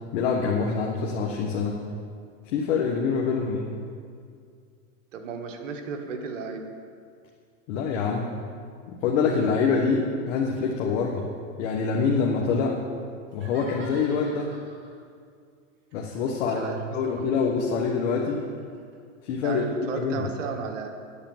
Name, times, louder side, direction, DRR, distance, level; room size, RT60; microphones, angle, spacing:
voice 1, 0.1-1.8 2.5-3.8 7.7-8.3 8.9-11.3 11.6-12.8 13.3-14.6 15.9-18.4 19.2-20.3, left 5 dB, 70° left, 0 dB, 1.5 m, -25 dB
voice 2, 5.1-6.7 16.5-17.2 19.4-20.9, right 5 dB, 90° right, 4 dB, 1.5 m, -34 dB
sound 1, 13.3-15.0 15.9-19.0, right 1 dB, 30° right, 3.1 m, -48 dB
10.0 x 8.8 x 7.3 m, 2.2 s
supercardioid pair, 125°, 37 cm